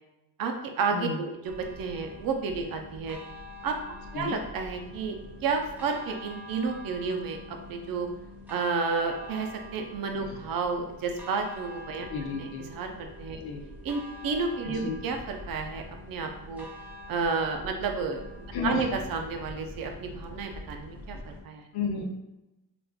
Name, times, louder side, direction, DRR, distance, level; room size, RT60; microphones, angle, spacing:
voice 1, 0.4-1.5 1.8-3.2 3.6-3.8 4.1-5.2 5.4-8.1 8.5-12.1 12.4-13.4 13.8-16.7 17.1-21.7, right 4 dB, 65° right, 4 dB, 0.5 m, -31 dB
voice 2, 0.9-1.2 4.1-4.4 10.2-10.4 12.1-12.6 13.4-13.6 14.6-15.0 18.5-18.9 21.7-22.0, left 5 dB, 75° left, 2 dB, 0.6 m, -32 dB
sound 1, 1.4-21.4, left 1 dB, 5° right, 0.5 m, -45 dB
3.4 x 2.4 x 2.3 m, 0.96 s
cardioid pair, 150°, 38 cm